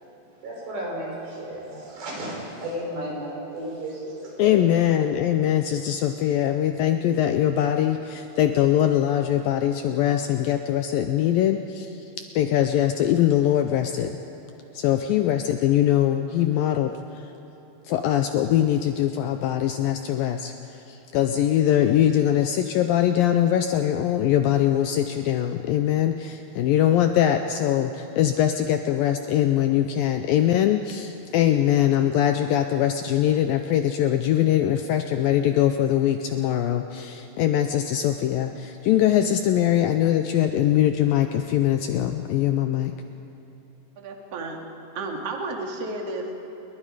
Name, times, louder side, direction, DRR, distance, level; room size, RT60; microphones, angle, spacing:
voice 1, 0.4-4.5, right 1 dB, 90° right, -3 dB, 7.4 m, -33 dB
voice 2, 4.4-11.9 12.4-14.1 14.7-16.9 17.9-20.5 20.9-42.9, left 11 dB, 85° left, 7 dB, 2.1 m, -22 dB
voice 3, 44.0-44.6 44.9-46.3, right 2 dB, 45° right, 2 dB, 2.4 m, -32 dB
28.5 x 21.5 x 5.0 m, 3.0 s
omnidirectional pair, 4.8 m